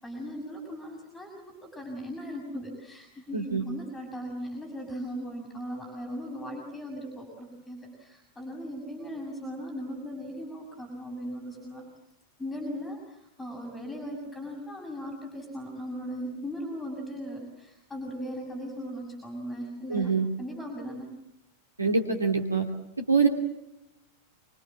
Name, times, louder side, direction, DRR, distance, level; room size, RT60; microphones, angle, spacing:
voice 1, 0.0-11.9 12.4-20.1 20.4-21.1, equal, 10° left, 0 dB, 6.8 m, -38 dB
voice 2, 3.3-3.6 19.9-20.2 21.8-22.6 23.1-23.3, right 4 dB, 80° right, 2 dB, 2.6 m, -24 dB
26.5 x 26.0 x 7.4 m, 0.90 s
figure-of-eight pair, 90°, 0 cm